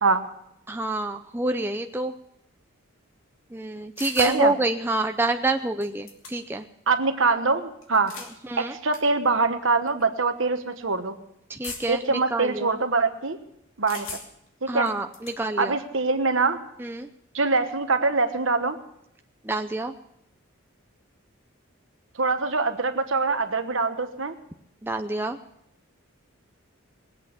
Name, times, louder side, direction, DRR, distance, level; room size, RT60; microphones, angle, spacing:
voice 1, 0.7-2.1 3.5-6.7 8.4-8.8 11.5-12.8 14.7-15.8 16.8-17.1 19.4-19.9 24.8-25.4, right 2 dB, 10° right, 5 dB, 0.5 m, -27 dB
sound 1, 4.0-4.4 5.5-5.6 5.8-6.6 7.8-8.3 8.9-9.0 9.9-10.0 11.6-12.1 13.9-14.5 14.9-15.4, left 4 dB, 75° left, 2.6 m, -38 dB
voice 2, 4.2-4.5 6.9-8.1 8.6-11.2 11.9-13.4 13.8-14.1 14.6-14.9 15.6-16.6 17.3-18.8 22.2-24.3, right 3 dB, 65° right, 8 dB, 1.2 m, -23 dB
20.5 x 8.3 x 7.2 m, 0.79 s
head